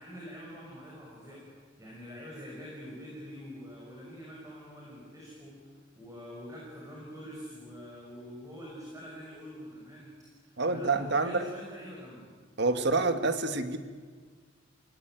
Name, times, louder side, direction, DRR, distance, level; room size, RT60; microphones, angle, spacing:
voice 1, 0.0-1.5 1.8-5.6 6.0-12.3, equal, 15° right, -4 dB, 6.1 m, -45 dB
voice 2, 10.6-11.4 12.6-13.8, right 3 dB, 65° right, 9 dB, 1.8 m, -27 dB
27.5 x 18.5 x 9.2 m, 1.5 s
head